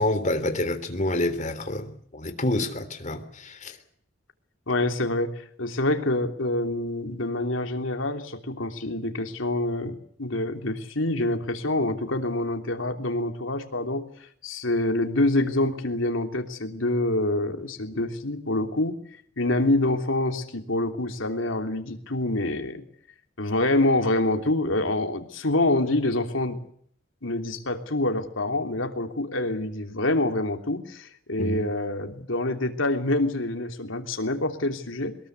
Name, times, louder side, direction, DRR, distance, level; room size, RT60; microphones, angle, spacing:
voice 1, 0.0-3.8 31.4-31.6, left 1 dB, 40° left, 3.3 m, -28 dB
voice 2, 4.7-14.1 14.4-19.0 19.4-22.8 23.4-26.6 27.2-35.2, left 2 dB, 85° left, 3.2 m, -26 dB
23.5 x 21.0 x 8.2 m
head